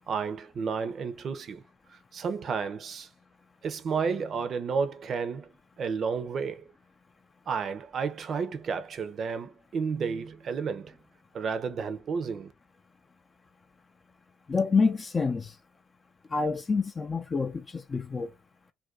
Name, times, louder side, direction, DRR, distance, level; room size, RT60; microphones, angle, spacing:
voice 1, 0.1-1.6 2.1-3.1 3.6-5.5 5.8-6.6 7.5-10.9 11.3-12.5, right 5 dB, 50° right, 0.5 m, -31 dB
voice 2, 14.5-15.5 16.3-18.3, left 4 dB, 35° left, 0.4 m, -27 dB
2.5 x 2.2 x 3.5 m
hypercardioid pair, 60°, 0 cm